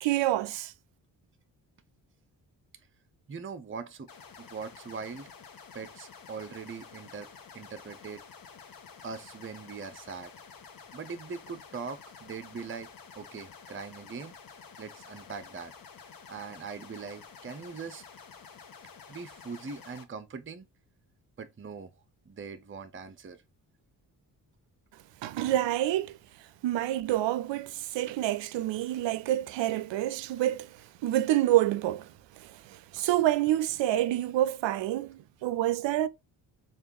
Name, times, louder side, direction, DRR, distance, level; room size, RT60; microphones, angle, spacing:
voice 1, 0.0-0.7 25.2-26.2 26.6-30.8 31.0-36.1, right 13 dB, 65° right, 0.6 m, -28 dB
voice 2, 3.3-4.1 4.4-5.3 5.7-7.3 7.5-8.2 9.0-10.3 10.9-12.9 13.2-14.4 14.8-15.7 16.3-18.0 19.1-20.7 21.4-21.9 22.3-23.4, right 5 dB, 25° right, 0.7 m, -41 dB
sound 1, 4.1-20.0, left 6 dB, 45° left, 1.0 m, -50 dB
3.4 x 2.5 x 4.4 m
hypercardioid pair, 40°, 48 cm